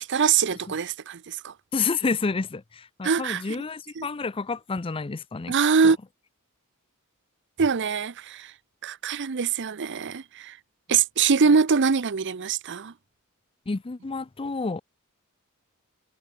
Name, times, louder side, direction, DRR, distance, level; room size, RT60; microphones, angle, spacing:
voice 1, 0.0-1.5 3.0-3.4 4.0-4.1 5.5-6.0 7.6-8.5 8.8-10.6 10.9-12.9, right 6 dB, 55° right, 0.6 m, -23 dB
voice 2, 1.7-5.5 5.8-5.9 13.7-14.8, left 4 dB, 25° left, 0.5 m, -29 dB
head